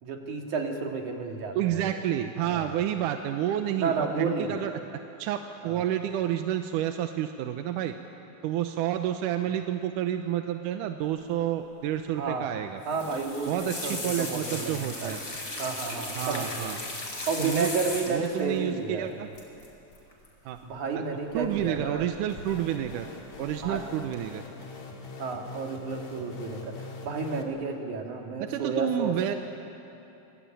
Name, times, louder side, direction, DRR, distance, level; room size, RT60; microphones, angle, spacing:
voice 1, 0.0-1.9 2.4-2.8 3.8-4.5 5.6-5.8 12.2-12.5 12.9-15.1 15.6-16.7 17.3-19.1 20.6-22.1 23.6-23.8 25.2-29.2, right 4 dB, 70° right, 2 dB, 3.7 m, -31 dB
voice 2, 1.5-4.7 5.2-7.9 8.4-12.8 13.5-15.2 16.2-16.8 17.4-17.7 18.1-19.3 20.5-20.6 21.0-21.1 21.3-23.1 23.4-24.4 28.4-29.4, right 11 dB, 90° right, 7 dB, 2.4 m, -29 dB
sound 1, 12.8-18.4 19.4-19.7 19.9-20.3 21.4-22.0 22.3-22.9 23.3-23.7 24.1-24.2, left 2 dB, 35° left, 5.5 m, -36 dB
sound 2, 22.3-27.4, left 3 dB, 65° left, 3.8 m, -43 dB
26.0 x 23.0 x 9.0 m, 2.8 s
omnidirectional pair, 3.6 m